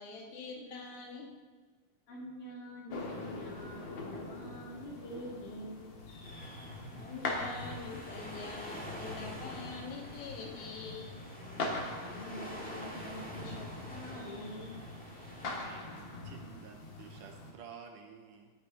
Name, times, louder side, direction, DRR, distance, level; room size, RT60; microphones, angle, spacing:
voice 1, 0.0-1.3 6.9-11.2, left 4 dB, 85° left, 1 dB, 3.3 m, -44 dB
voice 2, 2.1-5.8 12.0-14.8, equal, 65° left, -4 dB, 4.2 m, -46 dB
sound 1, 2.9-17.5, left 2 dB, 50° left, 1.6 m, -43 dB
sound 2, 6.2-15.6, equal, 5° left, 0.9 m, -47 dB
voice 3, 15.5-18.5, right 6 dB, 75° right, 5 dB, 2.1 m, -52 dB
17.5 x 6.6 x 4.7 m, 1.5 s
omnidirectional pair, 4.2 m